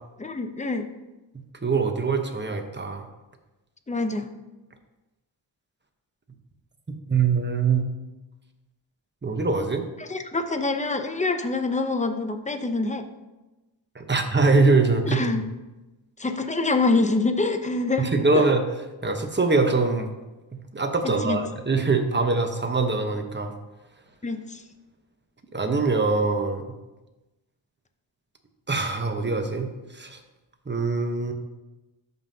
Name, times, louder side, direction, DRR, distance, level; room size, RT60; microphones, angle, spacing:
voice 1, 0.2-0.9 3.9-4.3 10.0-13.0 15.1-15.4 16.2-18.1 18.3-18.5 21.2-21.4 24.2-24.6, left 3 dB, 15° left, 7 dB, 0.6 m, -25 dB
voice 2, 1.6-3.0 7.1-7.9 9.2-9.8 13.9-15.2 18.0-18.6 19.0-20.1 20.7-23.5 25.5-26.6 28.7-30.2 30.7-31.3, right 3 dB, 25° right, 5 dB, 1.0 m, -23 dB
13.0 x 5.4 x 2.8 m, 1.1 s
wide cardioid pair, 75°, 47 cm